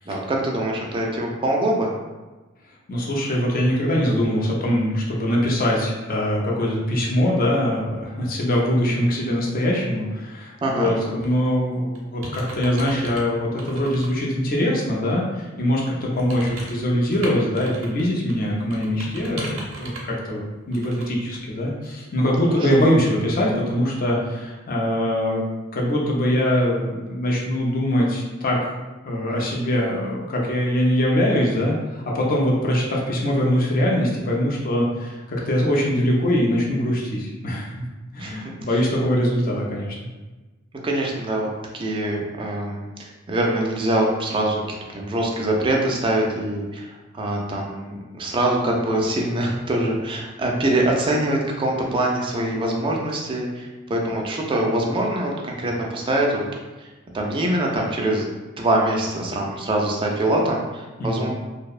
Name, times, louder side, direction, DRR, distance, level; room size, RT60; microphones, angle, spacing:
voice 1, 0.1-1.9 10.6-10.9 22.6-22.7 38.2-38.4 40.8-44.6 44.9-56.4 56.8-56.9 57.1-58.3 58.6-61.3, right 1 dB, 25° right, -1 dB, 0.3 m, -24 dB
voice 2, 2.9-20.4 20.7-25.4 25.7-28.7 29.0-37.7 38.1-40.0 61.0-61.3, equal, 45° left, -3 dB, 0.5 m, -22 dB
sound 1, 11.2-11.5 11.9-13.2 13.6-14.1 14.6-14.7 16.1-18.0 18.3-20.1 20.7-21.1 21.3-21.4, right 2 dB, 85° right, 0.6 m, -36 dB
2.7 x 2.0 x 2.3 m, 1.2 s
head